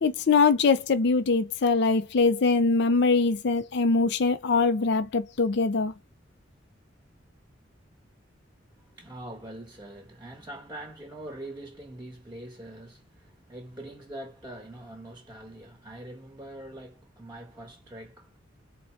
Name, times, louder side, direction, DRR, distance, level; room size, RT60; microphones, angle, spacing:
voice 1, 0.0-5.9, left 4 dB, 60° left, 0.5 m, -23 dB
voice 2, 8.7-18.4, right 1 dB, 10° right, 1.1 m, -43 dB
4.2 x 2.2 x 3.1 m
head